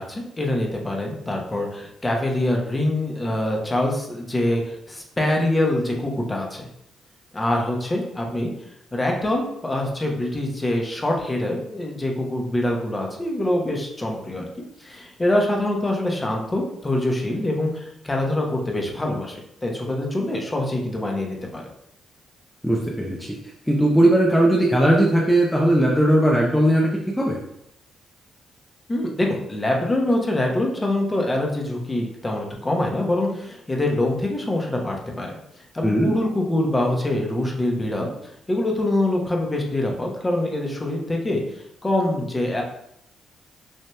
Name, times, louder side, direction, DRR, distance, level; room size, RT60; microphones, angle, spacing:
voice 1, 0.0-6.7 7.3-8.5 8.9-14.5 14.8-21.6 28.9-35.4 35.7-38.1 38.5-41.4 41.8-42.6, left 1 dB, 25° left, 0 dB, 1.1 m, -24 dB
voice 2, 22.6-23.4 23.7-26.9 27.2-27.4 35.8-36.1, right 1 dB, 5° left, -3 dB, 0.8 m, -18 dB
6.4 x 2.7 x 2.3 m, 0.77 s
supercardioid pair, 50°, 0 cm